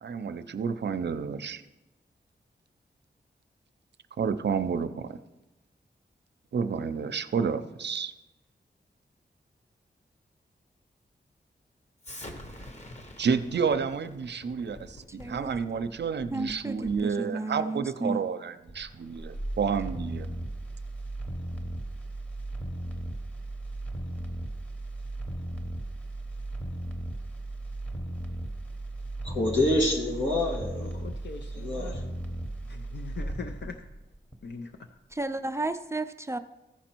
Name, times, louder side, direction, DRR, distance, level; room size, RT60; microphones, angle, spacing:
voice 1, 0.0-1.6 4.2-5.2 6.5-8.1 13.2-20.3, right 6 dB, 70° right, 11 dB, 0.5 m, -30 dB
Explosion, 12.0-17.1, left 1 dB, 35° left, 1.1 m, -46 dB
voice 2, 15.2-15.5 16.3-16.8 17.0-18.2 35.2-36.4, right 2 dB, 15° right, 9 dB, 0.4 m, -32 dB
sound 1, 18.7-34.8 35.1-35.2, right 1 dB, 5° left, 0.9 m, -36 dB
voice 3, 29.2-31.0 31.5-31.9, left 1 dB, 90° left, -1 dB, 2.1 m, -27 dB
voice 4, 30.7-32.1 32.6-33.8 34.4-34.9, left 5 dB, 70° left, 5 dB, 0.5 m, -42 dB
14.5 x 5.1 x 4.5 m, 1.0 s
wide cardioid pair, 115°, 19 cm